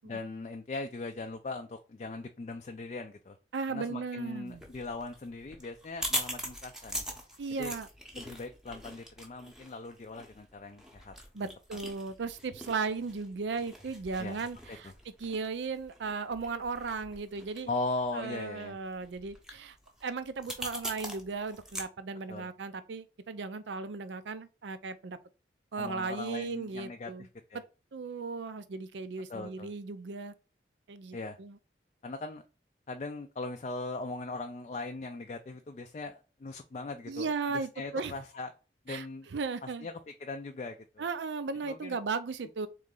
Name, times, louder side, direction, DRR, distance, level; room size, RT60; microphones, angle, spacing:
voice 1, 0.0-3.4 3.7-7.1 7.6-7.7 8.1-11.1 14.2-14.4 14.7-14.9 17.7-18.8 22.3-22.5 25.8-27.6 29.3-29.7 31.1-31.4 32.0-32.4 32.9-38.5 38.9-39.3 39.6-39.9 40.2-41.0 41.6-42.0, left 3 dB, 40° left, 0.3 m, -39 dB
voice 2, 3.5-4.6 7.4-7.9 11.3-14.9 15.2-17.7 18.1-19.8 20.0-25.2 25.7-27.3 27.9-30.3 30.9-31.6 37.1-38.1 38.9-39.9 41.0-42.7, right 4 dB, 90° right, 0.5 m, -36 dB
sound 1, 4.5-21.8, equal, 5° right, 0.7 m, -42 dB
3.7 x 3.1 x 3.7 m
head